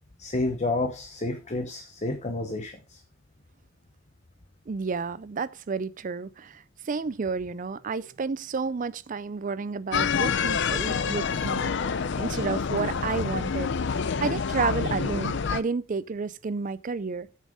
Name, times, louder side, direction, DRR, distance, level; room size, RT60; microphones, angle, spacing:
voice 1, 0.2-3.0, left 2 dB, 35° left, 0.8 m, -30 dB
voice 2, 4.7-11.7 12.2-13.7 14.2-17.3, right 5 dB, 40° right, 0.4 m, -31 dB
sound 1, 9.9-15.6, left 6 dB, 55° left, 0.5 m, -27 dB
7.5 x 7.2 x 4.9 m
head